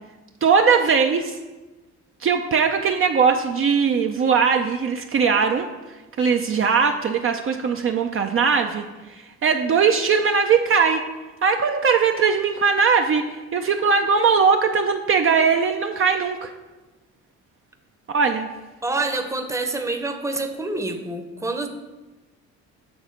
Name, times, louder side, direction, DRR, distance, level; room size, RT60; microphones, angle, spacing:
voice 1, 0.4-1.4 2.2-5.7 6.2-11.0 11.4-16.5 18.1-18.5, right 5 dB, 45° right, 4 dB, 0.5 m, -20 dB
voice 2, 18.8-21.7, right 2 dB, 10° right, 6 dB, 0.8 m, -27 dB
7.9 x 3.5 x 6.5 m, 1.2 s
cardioid pair, 90°, 30 cm